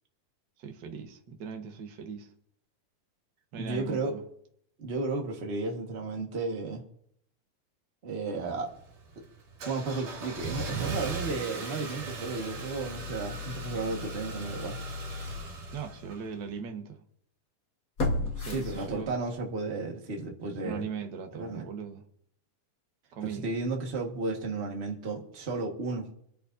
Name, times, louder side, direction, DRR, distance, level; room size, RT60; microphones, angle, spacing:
voice 1, 0.6-2.3 3.5-4.2 15.7-17.0 18.0-19.1 20.6-22.0 23.1-23.5, right 6 dB, 55° right, 4 dB, 1.3 m, -39 dB
voice 2, 3.6-4.2 4.8-6.8 8.0-8.7 9.6-14.8 18.4-20.8 21.4-21.7 23.2-26.0, right 3 dB, 35° right, 1 dB, 1.0 m, -33 dB
Car / Engine starting, 8.3-16.5, right 2 dB, 85° right, 3.9 m, -38 dB
sound 1, 14.7-14.8 15.4-15.5 18.0-19.4 19.8-19.9, left 2 dB, 40° left, 1.3 m, -32 dB
25.0 x 9.9 x 2.7 m, 0.69 s
omnidirectional pair, 3.6 m